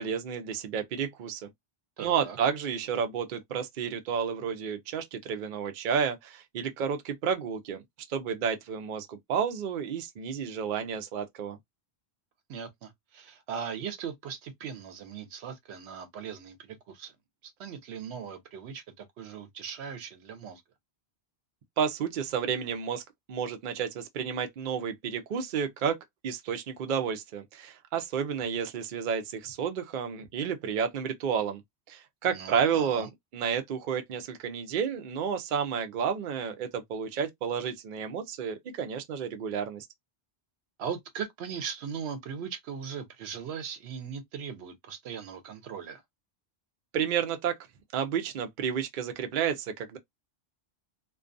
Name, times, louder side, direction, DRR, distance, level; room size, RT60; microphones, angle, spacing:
voice 1, 0.0-1.5 2.0-7.8 8.1-11.6 21.8-23.0 23.3-26.0 26.2-31.6 31.9-39.9 46.9-47.6 47.9-50.0, right 7 dB, 60° right, 0.6 m, -31 dB
voice 2, 2.0-2.4 12.5-17.1 17.4-20.6 32.3-33.1 40.8-46.0, right 7 dB, 85° right, 0.9 m, -39 dB
2.3 x 2.2 x 2.4 m
omnidirectional pair, 1.1 m